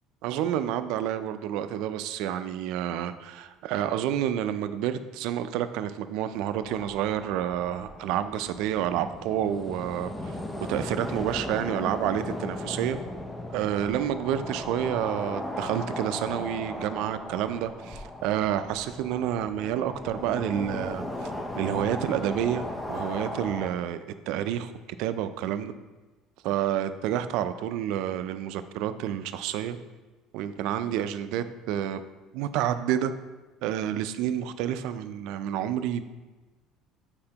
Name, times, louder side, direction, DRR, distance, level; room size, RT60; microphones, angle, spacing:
voice 1, 0.2-10.4 10.7-13.0 13.5-21.1 21.6-24.7 25.0-25.7 26.4-29.8 30.3-32.0 32.3-33.1 33.6-36.0, right 10 dB, 75° right, 11 dB, 0.4 m, -29 dB
sound 1, 6.6-23.7, left 1 dB, 15° left, 0.5 m, -37 dB
8.7 x 4.3 x 2.9 m, 1.2 s
cardioid pair, 150°, 0 cm